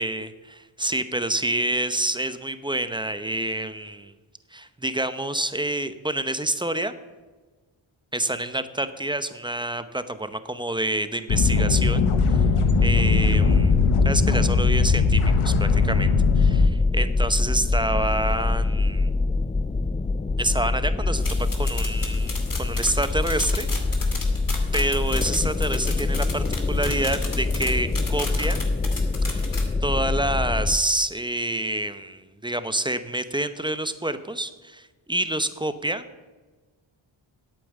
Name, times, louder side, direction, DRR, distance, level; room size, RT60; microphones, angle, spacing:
voice 1, 0.0-4.1 4.5-6.9 8.1-12.0 12.3-12.5 12.8-13.7 14.0-19.1 20.4-24.2 24.7-28.6 29.3-29.5 29.8-36.0, right 1 dB, 10° right, 11 dB, 0.8 m, -28 dB
sound 1, 11.3-16.7, left 5 dB, 80° left, 1.1 m, -20 dB
sound 2, 12.7-30.8, left 3 dB, 15° left, 0.4 m, -25 dB
JK Het i Pen, 21.2-29.7, left 3 dB, 40° left, 2.4 m, -35 dB
8.9 x 8.4 x 7.4 m, 1.3 s
cardioid pair, 55°, 50 cm